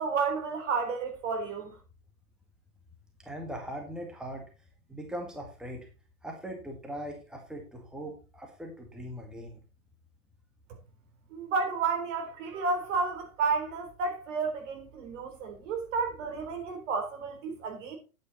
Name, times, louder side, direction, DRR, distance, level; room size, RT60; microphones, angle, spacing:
voice 1, 0.0-1.8 11.3-18.0, right 4 dB, 55° right, 4.0 m, -31 dB
voice 2, 3.2-4.4 4.9-5.9 6.2-9.6, equal, ahead, 1.8 m, -40 dB
10.0 x 8.6 x 4.2 m
hypercardioid pair, 110°, 45 cm